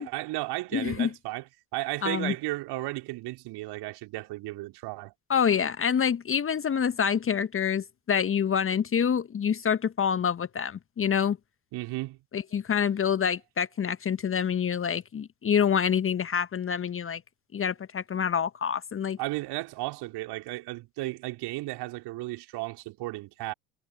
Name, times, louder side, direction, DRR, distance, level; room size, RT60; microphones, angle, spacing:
voice 1, 0.0-5.1 11.7-12.2 19.2-23.5, right 19 dB, 55° right, 4.1 m, -34 dB
voice 2, 0.7-1.1 2.0-2.3 5.3-11.4 12.3-17.2 17.5-19.2, left 7 dB, 25° left, 1.5 m, -27 dB
figure-of-eight pair, 65°, 48 cm